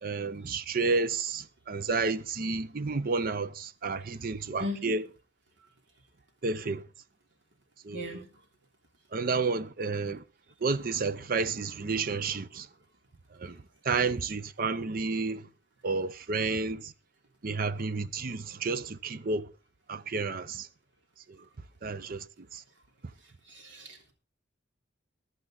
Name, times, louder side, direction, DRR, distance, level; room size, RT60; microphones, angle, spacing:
voice 1, 0.0-5.1 6.4-6.8 7.8-8.2 9.1-10.2 10.6-12.7 13.4-15.5 15.8-16.9 17.4-19.5 19.9-20.7 21.8-22.2 22.5-22.6, right 4 dB, 50° right, 0.6 m, -31 dB
voice 2, 4.6-4.9 7.9-8.2 23.6-24.1, left 1 dB, 70° right, 3.4 m, -37 dB
15.5 x 11.0 x 3.9 m
head